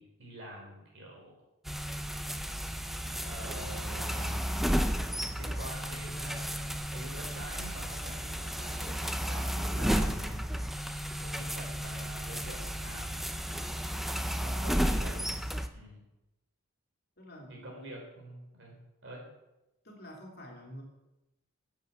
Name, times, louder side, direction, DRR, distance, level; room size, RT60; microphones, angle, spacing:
voice 1, 0.0-1.3 3.2-5.0 5.4-10.6 11.1-13.3 14.4-15.3 15.7-16.0 17.5-18.7 19.0-19.2, equal, 55° right, -1 dB, 4.6 m, -46 dB
sound 1, 1.7-15.7, equal, ahead, 0.5 m, -33 dB
voice 2, 17.2-17.9 19.8-20.8, equal, 45° left, 0 dB, 3.0 m, -48 dB
11.0 x 8.3 x 8.0 m, 0.95 s
head